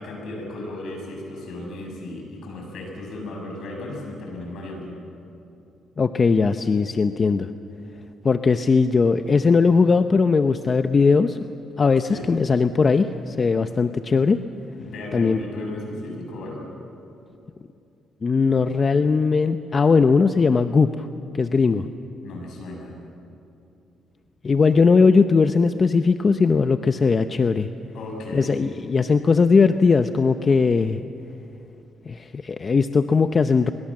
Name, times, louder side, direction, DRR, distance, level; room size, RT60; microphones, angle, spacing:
voice 1, 0.0-4.9 12.0-12.3 14.7-16.7 22.2-22.9 27.9-28.5, left 2 dB, 70° left, 1 dB, 7.2 m, -35 dB
voice 2, 6.0-7.5 8.2-11.5 11.8-14.4 15.1-15.4 18.2-21.1 21.3-21.9 24.4-27.7 28.3-31.0 32.1-33.7, left 4 dB, 35° left, 9 dB, 0.7 m, -19 dB
23.5 x 22.5 x 7.6 m, 2.7 s
cardioid pair, 90°, 0 cm